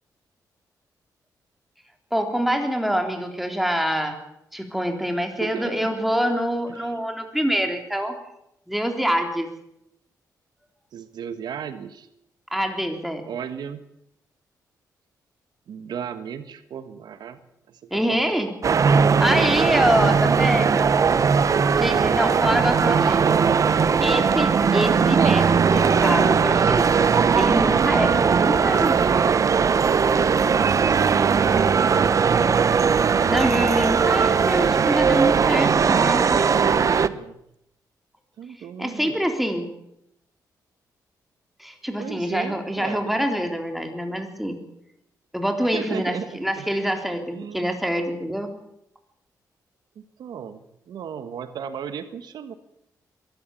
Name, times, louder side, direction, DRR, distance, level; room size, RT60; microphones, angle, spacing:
voice 1, 2.1-4.2 4.5-8.2 8.7-9.5 12.5-13.2 17.9-18.5 19.0-20.9 21.8-23.2 24.0-29.0 33.3-36.6 38.8-39.7 41.6-44.6 45.3-48.5, equal, ahead, 5 dB, 3.7 m, -25 dB
voice 2, 5.4-5.9 6.7-7.0 10.9-12.1 13.2-13.8 15.7-17.4 17.7-18.3 20.0-21.6 22.8-24.1 28.6-30.0 30.4-33.1 36.3-37.4 38.4-39.3 42.0-43.2 45.6-46.3 46.6-46.7 47.3-47.7 49.9-52.5, right 7 dB, 80° right, 11 dB, 1.5 m, -35 dB
sound 1, 18.6-37.1, right 6 dB, 50° right, 0.9 m, -19 dB
23.0 x 13.5 x 8.6 m, 0.80 s
cardioid pair, 85°, 7 cm